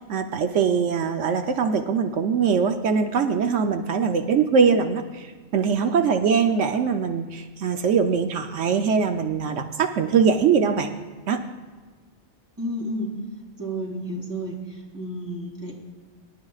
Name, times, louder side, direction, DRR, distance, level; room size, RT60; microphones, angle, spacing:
voice 1, 0.1-10.9 11.3-11.4, right 6 dB, 85° right, 6 dB, 1.1 m, -22 dB
voice 2, 12.6-13.1 13.6-15.7, right 1 dB, 15° right, -3 dB, 3.4 m, -32 dB
24.5 x 11.5 x 2.4 m, 1.4 s
omnidirectional pair, 1.2 m